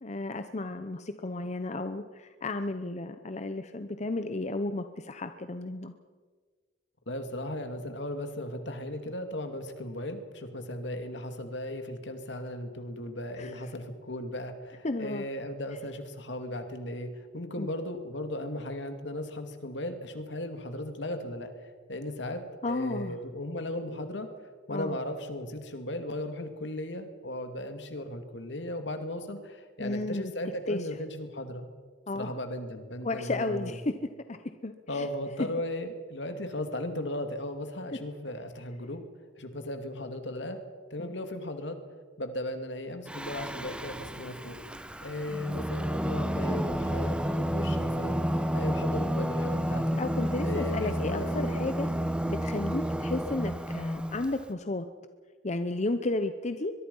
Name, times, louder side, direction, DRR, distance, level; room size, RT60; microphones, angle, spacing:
voice 1, 0.0-5.9 13.4-13.5 14.8-15.2 17.6-17.7 22.6-23.2 24.7-25.0 29.8-30.3 30.7-30.8 32.1-32.3 33.0-33.9 34.3-34.4 34.6-35.1 41.0-41.1 50.0-51.9 52.3-54.9 55.4-56.7, left 2 dB, 40° left, 9 dB, 0.8 m, -33 dB
voice 2, 7.1-22.4 22.7-24.3 24.7-31.7 32.1-33.8 34.9-39.0 39.4-40.6 40.9-41.8 42.2-44.6 45.0-48.2 48.5-50.0 50.4-51.5, left 1 dB, 70° left, 7 dB, 2.5 m, -36 dB
Singing, 43.1-54.4, equal, 5° right, 1.0 m, -31 dB
23.5 x 22.5 x 5.6 m, 1.5 s
head